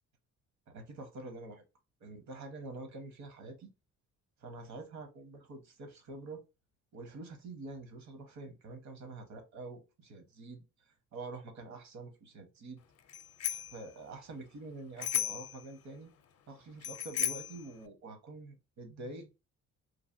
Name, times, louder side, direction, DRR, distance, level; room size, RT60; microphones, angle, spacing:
voice 1, 0.7-1.6 2.0-3.7 4.4-6.4 6.9-12.8 13.5-16.1 16.5-19.3, right 3 dB, 65° right, 1.1 m, -46 dB
Bicycle bell, 13.1-13.8 15.0-15.6 16.8-17.6, left 11 dB, 55° left, 0.5 m, -34 dB
3.2 x 2.5 x 2.6 m
cardioid pair, 90°, 30 cm